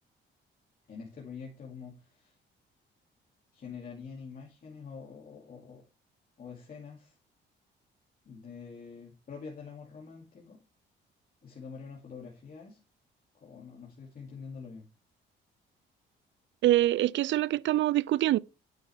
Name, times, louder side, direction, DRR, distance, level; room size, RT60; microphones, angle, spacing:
voice 1, 0.9-2.3 3.5-5.8 6.4-7.2 8.3-10.6 11.4-12.8 13.3-14.8, left 5 dB, 45° left, 2.6 m, -46 dB
voice 2, 16.6-18.4, right 14 dB, 70° right, 0.4 m, -25 dB
9.0 x 7.8 x 3.4 m
cardioid pair, 90°, 20 cm